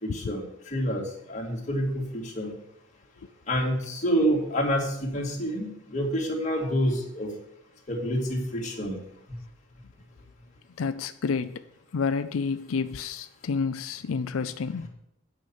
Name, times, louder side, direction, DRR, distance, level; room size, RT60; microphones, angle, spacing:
voice 1, 0.0-2.5 3.5-7.3 7.9-9.0, equal, 35° left, -1 dB, 2.3 m, -28 dB
voice 2, 10.8-11.6 11.9-14.9, left 5 dB, 90° left, 11 dB, 0.5 m, -29 dB
9.0 x 5.8 x 7.3 m, 0.77 s
head